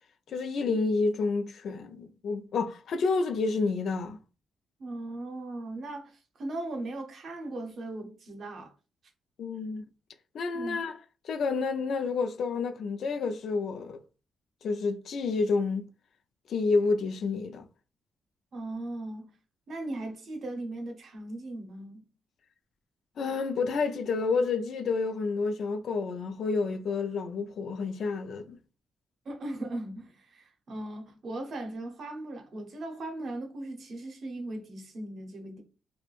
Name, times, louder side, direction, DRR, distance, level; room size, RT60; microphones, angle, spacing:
voice 1, 0.3-4.2 9.4-9.8 10.3-10.9 11.3-14.0 14.6-15.9 16.5-17.7 23.2-28.6, left 4 dB, 60° left, 0.3 m, -29 dB
voice 2, 4.8-8.7 10.5-10.8 18.5-19.3 19.7-22.1 29.2-35.6, right 2 dB, 50° right, 0.7 m, -38 dB
3.0 x 2.1 x 2.3 m
cardioid pair, 135°, 0 cm